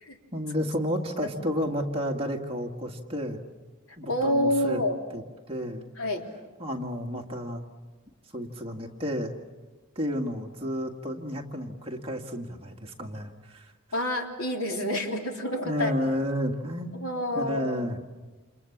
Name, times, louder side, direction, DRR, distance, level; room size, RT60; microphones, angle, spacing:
voice 1, 0.3-3.5 4.0-4.8 5.1-5.2 5.5-5.9 6.6-7.6 8.3-9.3 10.0-13.7 15.6-16.9 17.3-18.0, equal, 25° right, 1 dB, 2.0 m, -31 dB
voice 2, 4.1-5.0 6.0-6.3 13.9-15.9 16.9-17.8, left 1 dB, 75° left, 3 dB, 3.5 m, -28 dB
29.0 x 28.0 x 7.3 m, 1.3 s
head